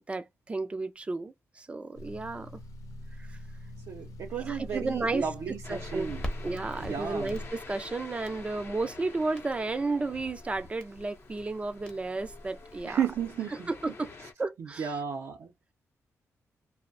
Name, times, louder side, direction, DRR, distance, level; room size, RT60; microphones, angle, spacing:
voice 1, 0.0-2.5 3.2-3.4 4.4-5.3 5.7-6.1 6.4-13.0 13.7-14.1 14.4-14.9, right 3 dB, 20° right, 0.5 m, -33 dB
sound 1, 1.9-7.5, left 1 dB, 85° left, 0.8 m, -43 dB
voice 2, 3.9-6.2 6.8-7.3 12.8-13.7 14.6-15.5, right 7 dB, 75° right, 0.6 m, -33 dB
sound 2, 5.6-14.3, left 4 dB, 45° left, 0.7 m, -48 dB
Crackle, 6.0-13.4, equal, 20° left, 0.8 m, -44 dB
2.6 x 2.1 x 2.5 m
wide cardioid pair, 125°, 6 cm